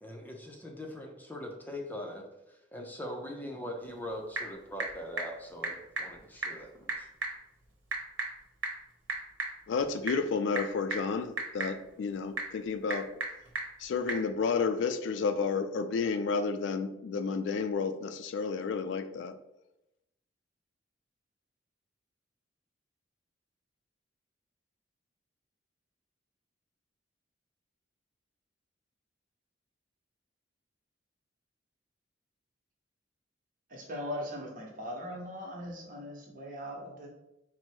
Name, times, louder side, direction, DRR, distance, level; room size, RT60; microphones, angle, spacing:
voice 1, 0.0-7.1, left 1 dB, 10° left, 1 dB, 0.5 m, -42 dB
Typing / Telephone, 3.8-14.3, right 3 dB, 85° right, 0.9 m, -39 dB
voice 2, 9.7-13.1 13.8-19.4, left 5 dB, 70° left, 10 dB, 0.3 m, -31 dB
voice 3, 33.7-37.1, equal, 45° right, -1 dB, 1.0 m, -40 dB
4.4 x 2.0 x 4.4 m, 0.90 s
head